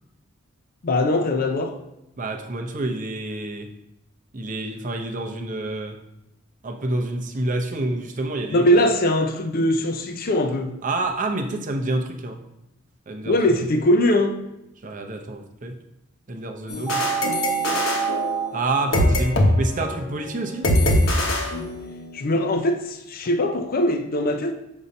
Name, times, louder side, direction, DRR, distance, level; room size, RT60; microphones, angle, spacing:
voice 1, 0.8-1.7 8.5-10.7 13.3-14.3 22.1-24.5, left 1 dB, 45° left, 0.5 m, -21 dB
voice 2, 2.2-3.7 4.3-6.0 6.6-8.7 10.8-12.4 13.1-13.7 14.8-15.8 16.3-17.0 18.5-20.7, right 2 dB, 40° right, 0.6 m, -28 dB
sound 1, 16.7-19.5 19.8-20.0 20.6-22.2, left 1 dB, 75° left, 1.1 m, -22 dB
sound 2, 16.9-18.5, right 8 dB, 5° left, 0.7 m, -26 dB
7.0 x 2.7 x 5.1 m
head